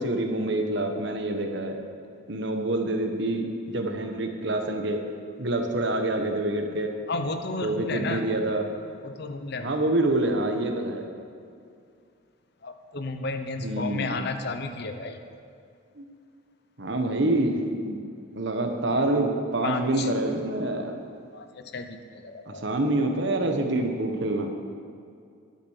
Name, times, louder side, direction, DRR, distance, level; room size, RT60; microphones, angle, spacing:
voice 1, 0.0-1.8 2.3-5.0 5.4-6.9 7.6-8.7 9.6-11.0 13.6-14.2 16.0-16.1 16.8-18.0 18.3-20.9 22.5-24.5, right 1 dB, 60° right, 4 dB, 1.2 m, -26 dB
voice 2, 7.1-8.3 9.0-9.9 12.6-15.2 19.6-20.1 21.3-22.7, left 3 dB, 55° left, 7 dB, 0.8 m, -33 dB
11.5 x 8.6 x 6.5 m, 2.3 s
head